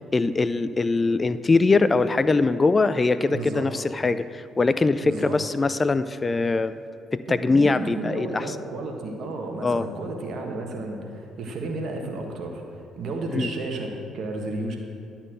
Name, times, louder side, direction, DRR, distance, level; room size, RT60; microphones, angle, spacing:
voice 1, 0.1-6.7 7.1-8.4 9.6-9.9 13.3-13.5, left 3 dB, 30° left, 13 dB, 0.3 m, -22 dB
voice 2, 3.3-3.7 5.0-5.4 7.3-14.8, right 2 dB, 60° right, 2 dB, 1.4 m, -32 dB
11.0 x 4.3 x 7.8 m, 2.5 s
hypercardioid pair, 50°, 0 cm